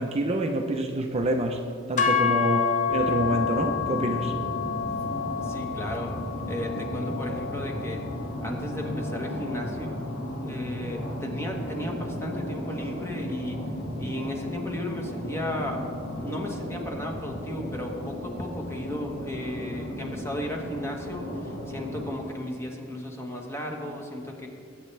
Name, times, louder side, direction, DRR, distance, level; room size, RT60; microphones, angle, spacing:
voice 1, 0.0-1.6 1.9-4.3, right 1 dB, 30° right, 3 dB, 0.7 m, -27 dB
sound 1, 2.0-10.2, left 6 dB, 40° left, 0.9 m, -30 dB
sound 2, 2.8-22.0, equal, 75° left, 2.2 m, -35 dB
voice 2, 5.2-6.1 6.5-8.0 8.4-10.0 10.4-13.6 14.0-15.9 16.2-24.5, left 1 dB, 15° left, 1 dB, 1.3 m, -35 dB
20.5 x 8.8 x 3.4 m, 2.3 s
head